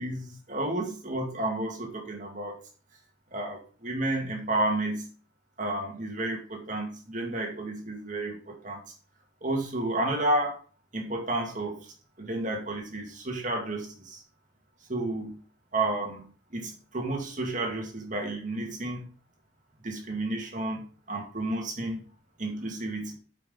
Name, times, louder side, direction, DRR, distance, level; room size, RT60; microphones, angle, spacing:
voice 1, 0.0-2.6 3.3-5.1 5.6-8.8 9.4-10.6 10.9-14.2 14.9-15.4 15.7-19.1 19.8-22.0 22.4-23.1, right 2 dB, 40° right, 1 dB, 2.2 m, -31 dB
9.3 x 5.8 x 3.9 m, 0.39 s
head